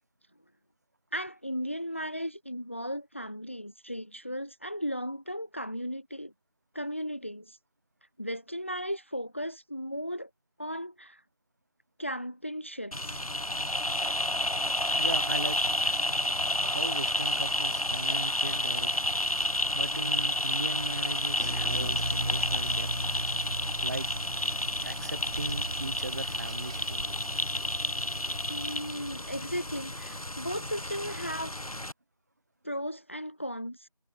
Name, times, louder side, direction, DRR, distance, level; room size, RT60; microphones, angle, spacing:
voice 1, 1.1-6.3 6.7-7.6 8.2-10.3 10.6-11.2 12.0-13.2 28.5-31.5 32.6-33.9, equal, 20° left, 1.3 m, -36 dB
sound 1, 12.9-31.9, left 1 dB, 65° left, 6.0 m, -30 dB
voice 2, 15.0-15.6 16.6-18.9 19.7-22.9 23.8-24.1 24.8-27.1, right 2 dB, 25° right, 7.1 m, -37 dB
sound 2, 21.4-26.6, right 1 dB, 85° right, 3.5 m, -37 dB
sound 3, 21.7-26.9, right 4 dB, 10° right, 4.1 m, -45 dB
figure-of-eight pair, 175°, 20 cm